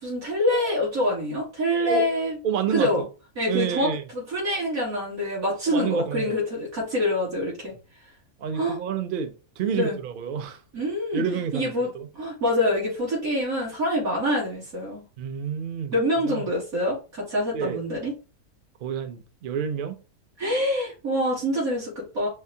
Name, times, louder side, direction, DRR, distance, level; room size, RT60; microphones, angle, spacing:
voice 1, 0.0-2.4 2.7-3.0 3.4-7.7 8.5-8.8 9.7-10.0 10.7-11.3 11.5-11.9 12.1-15.0 15.9-18.1 20.4-22.3, left 1 dB, 75° right, 2.9 m, -25 dB
voice 2, 2.4-3.1 3.5-4.0 5.7-6.4 8.4-10.6 11.1-12.1 15.2-15.9 16.2-16.5 17.5-17.8 18.8-20.0, right 7 dB, 60° right, 0.5 m, -29 dB
5.4 x 2.5 x 2.7 m
omnidirectional pair, 1.5 m